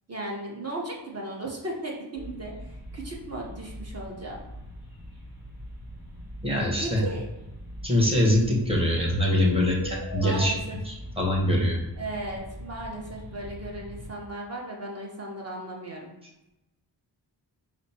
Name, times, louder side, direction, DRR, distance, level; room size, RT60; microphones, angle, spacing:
voice 1, 0.1-4.4 6.8-7.3 10.2-10.8 12.0-16.1, right 1 dB, 35° right, -2 dB, 1.0 m, -36 dB
sound 1, 2.1-14.1, left 1 dB, 50° right, 1.4 m, -41 dB
voice 2, 6.4-7.0 7.8-10.5 10.8-11.8, left 1 dB, 15° right, -3 dB, 1.1 m, -23 dB
5.0 x 2.0 x 4.3 m, 0.94 s
wide cardioid pair, 100°, 43 cm